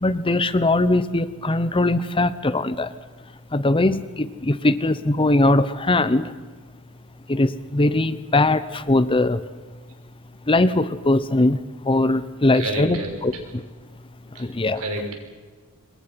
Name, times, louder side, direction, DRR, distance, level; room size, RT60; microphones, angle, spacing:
voice 1, 0.0-2.9 3.5-6.3 7.3-9.4 10.5-11.6 11.8-13.0 13.2-13.3 14.4-14.8, left 2 dB, 25° left, 15 dB, 0.8 m, -20 dB
voice 2, 12.5-13.1 14.3-15.2, right 2 dB, 70° right, 3 dB, 5.6 m, -30 dB
27.0 x 22.5 x 5.7 m, 1.4 s
head